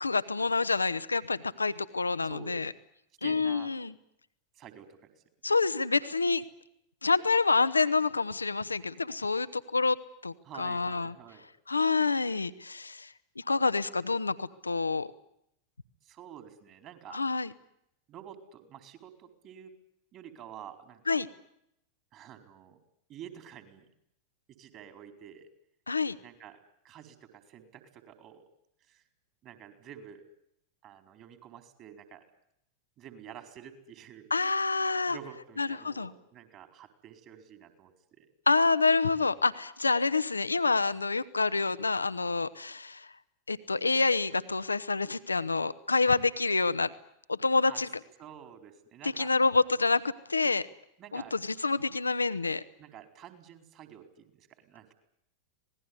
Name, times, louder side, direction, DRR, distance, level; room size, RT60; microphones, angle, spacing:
voice 1, 0.0-2.7 3.2-3.9 5.4-6.4 7.0-10.0 10.2-11.1 11.7-13.1 13.4-15.1 17.1-17.5 21.1-21.3 25.9-26.2 34.3-35.2 35.6-36.1 38.5-43.1 43.5-46.9 47.3-47.9 49.0-50.0 50.3-50.6 51.1-52.6, left 4 dB, 80° left, 15 dB, 1.0 m, -27 dB
voice 2, 2.2-2.7 3.2-3.7 4.5-5.1 10.4-11.5 16.0-17.2 18.1-19.7 20.1-21.2 22.1-22.8 23.1-23.9 24.6-25.5 26.2-26.6 26.8-28.4 28.8-29.0 29.4-30.2 30.8-32.2 33.0-34.3 35.1-38.3 47.7-47.8 48.2-49.3 51.0-51.4 52.8-54.9, right 9 dB, 35° right, 7 dB, 4.5 m, -49 dB
26.0 x 19.5 x 9.8 m, 0.78 s
figure-of-eight pair, 90°, 0 cm